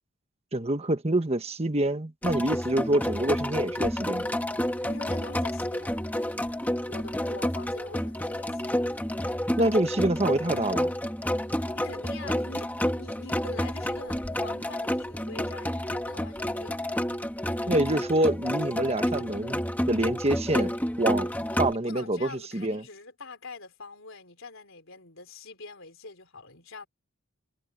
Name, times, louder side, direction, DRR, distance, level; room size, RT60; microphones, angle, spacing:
voice 1, 0.5-4.3 9.6-10.9 17.7-19.6 19.9-20.7 21.0-21.3 21.6-22.8, right 1 dB, 30° right, 1.3 m, -26 dB
sound 1, 2.2-21.7, left 1 dB, 10° left, 1.5 m, -30 dB
voice 2, 4.8-6.1 6.9-8.9 11.5-17.1 21.7-26.9, left 3 dB, 60° left, 4.1 m, -45 dB
head